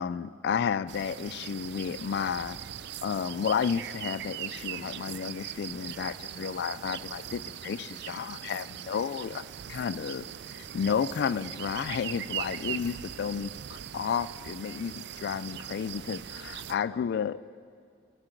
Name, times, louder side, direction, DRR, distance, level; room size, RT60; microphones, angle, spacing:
voice 1, 0.0-2.6 3.0-10.2 10.5-17.4, left 7 dB, 60° left, 17 dB, 0.3 m, -32 dB
sound 1, 0.9-16.8, right 10 dB, 65° right, 0.4 m, -40 dB
18.0 x 11.5 x 4.6 m, 2.3 s
head